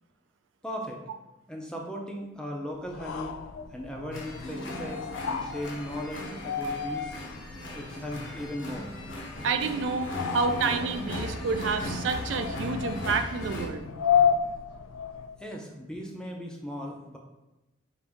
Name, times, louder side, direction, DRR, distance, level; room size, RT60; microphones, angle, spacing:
voice 1, 0.6-1.0 1.5-3.4 3.7-7.2 7.7-8.9 15.4-17.2, equal, 5° left, 0 dB, 0.5 m, -37 dB
sound 1, 2.8-15.4, left 7 dB, 85° left, 0.3 m, -32 dB
sound 2, 4.1-13.7, left 1 dB, 65° left, 0.7 m, -38 dB
voice 2, 9.4-13.9, right 4 dB, 70° right, 8 dB, 0.3 m, -29 dB
5.0 x 2.6 x 3.4 m, 1.0 s
head